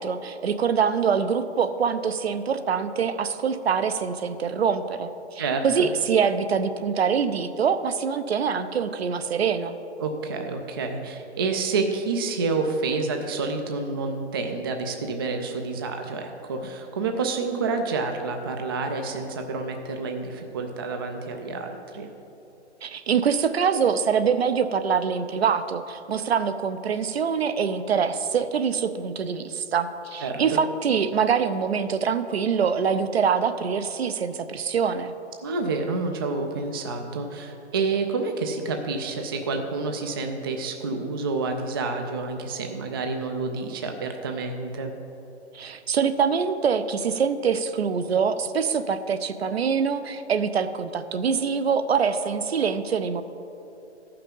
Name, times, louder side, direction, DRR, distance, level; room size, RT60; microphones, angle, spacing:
voice 1, 0.0-9.8 22.8-35.1 45.5-53.2, right 6 dB, 60° right, 10 dB, 0.7 m, -24 dB
voice 2, 5.4-5.9 10.0-22.1 30.2-30.6 35.4-44.9, right 4 dB, 20° right, 4 dB, 0.3 m, -29 dB
14.0 x 5.8 x 5.3 m, 2.9 s
figure-of-eight pair, 125°, 35 cm